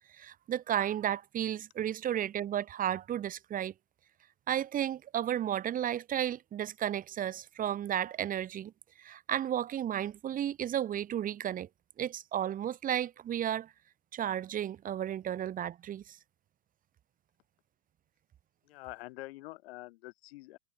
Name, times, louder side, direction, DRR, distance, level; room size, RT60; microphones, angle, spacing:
voice 1, 0.1-3.7 4.5-8.7 9.0-11.7 12.0-13.7 14.1-16.2, right 10 dB, 25° right, 2.0 m, -33 dB
voice 2, 18.6-20.6, left 19 dB, 70° left, 3.7 m, -46 dB
supercardioid pair, 145°, 32 cm